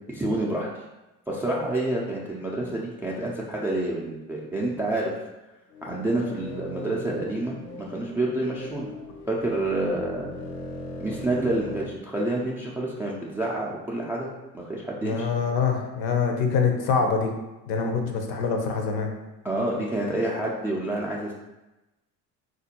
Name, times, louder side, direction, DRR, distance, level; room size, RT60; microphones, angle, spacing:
voice 1, 0.1-0.7 1.3-5.1 5.8-8.9 9.3-10.3 11.0-14.3 14.5-15.3 19.4-21.3, right 1 dB, 5° right, -4 dB, 0.3 m, -28 dB
sound 1, 5.7-11.9, left 1 dB, 80° left, 0.8 m, -39 dB
voice 2, 15.1-17.3 17.7-19.1, left 5 dB, 55° left, 3 dB, 0.8 m, -24 dB
3.6 x 2.5 x 2.8 m, 1.0 s
hypercardioid pair, 70°, 46 cm